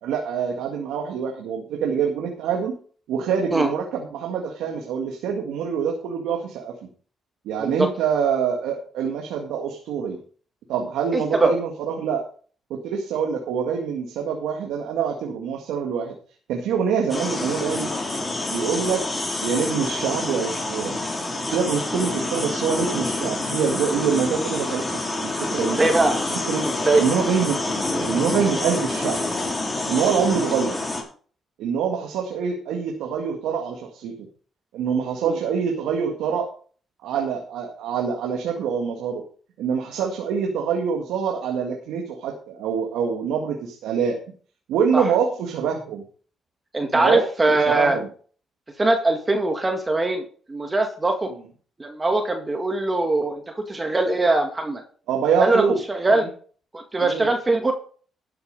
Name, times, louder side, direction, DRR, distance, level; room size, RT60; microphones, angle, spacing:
voice 1, 0.0-2.7 3.1-6.7 7.5-10.2 10.7-12.2 12.7-16.2 16.5-17.9 18.5-19.0 19.4-21.0 21.5-25.8 26.5-26.7 27.0-27.6 28.1-29.2 29.9-30.8 31.6-34.1 34.7-36.5 37.0-39.2 39.6-44.2 44.7-46.0 46.9-48.1 55.1-55.8 56.1-56.3 57.0-57.3, right 7 dB, 90° right, 2 dB, 2.0 m, -25 dB
voice 2, 11.1-11.5 25.6-26.2 26.6-27.0 44.9-45.0 46.7-48.0 48.8-51.3 51.8-53.4 53.7-54.8 55.4-56.2 56.7-57.7, right 2 dB, 20° right, 4 dB, 1.9 m, -21 dB
sound 1, 17.1-31.0, left 2 dB, 20° left, 4.2 m, -27 dB
12.5 x 6.9 x 5.3 m, 0.44 s
cardioid pair, 90°, 0 cm